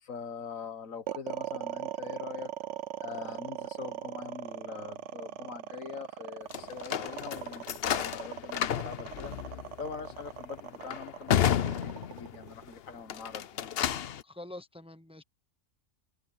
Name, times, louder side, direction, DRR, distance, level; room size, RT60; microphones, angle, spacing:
voice 1, 0.0-2.5 3.0-9.3 9.8-13.9, left 6 dB, 85° left, 1.8 m, -43 dB
sound 1, 1.1-13.3, right 10 dB, 65° right, 1.0 m, -39 dB
sound 2, 6.5-12.6 13.0-14.2, left 10 dB, 55° left, 0.8 m, -32 dB
voice 2, 14.2-15.2, left 1 dB, 5° right, 0.9 m, -45 dB
open air
omnidirectional pair, 1.3 m